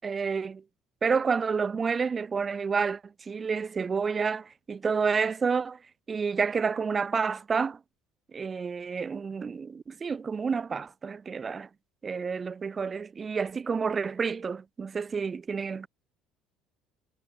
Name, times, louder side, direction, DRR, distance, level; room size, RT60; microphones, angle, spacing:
voice 1, 0.0-0.6 1.0-3.0 3.3-5.8 6.1-7.8 8.3-11.7 12.0-15.9, right 5 dB, 35° right, 6.5 m, -29 dB
hypercardioid pair, 70°, 0 cm